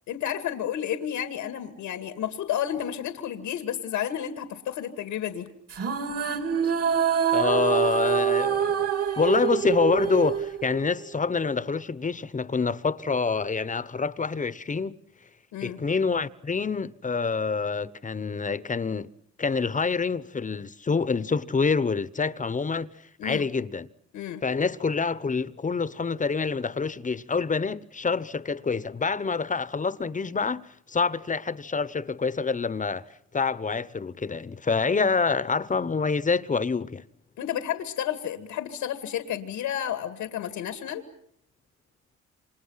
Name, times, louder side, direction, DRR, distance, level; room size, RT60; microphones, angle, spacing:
voice 1, 0.1-5.5 15.5-15.8 23.2-23.5 24.1-24.4 37.4-41.0, left 10 dB, 90° left, 2.3 m, -31 dB
sound 1, 5.7-11.2, right 8 dB, 50° right, 2.9 m, -26 dB
voice 2, 7.3-8.9 9.2-14.9 15.6-19.1 19.4-22.9 23.2-23.9 24.4-37.0, left 4 dB, 25° left, 1.1 m, -27 dB
29.0 x 26.0 x 5.8 m
cardioid pair, 90°, 30 cm